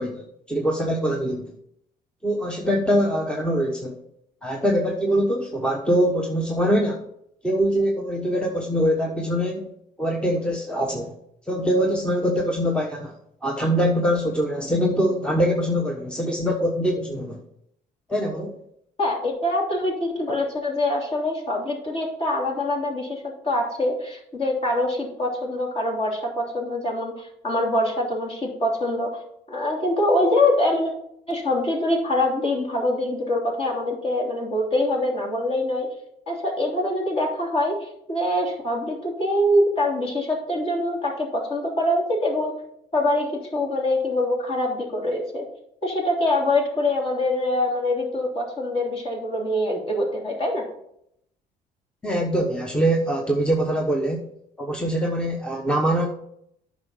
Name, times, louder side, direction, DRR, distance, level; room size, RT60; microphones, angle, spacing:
voice 1, 0.0-1.5 2.2-4.0 4.4-7.0 7.4-9.7 10.0-11.1 11.5-13.1 13.4-17.4 18.1-18.5 52.0-54.2 54.6-56.1, equal, 5° left, 1 dB, 1.1 m, -23 dB
voice 2, 19.0-29.2 29.5-30.9 31.3-35.9 36.3-42.5 42.9-45.5 45.8-50.7, left 1 dB, 35° left, -1 dB, 3.3 m, -24 dB
9.6 x 6.2 x 5.6 m, 0.74 s
cardioid pair, 110°, 17 cm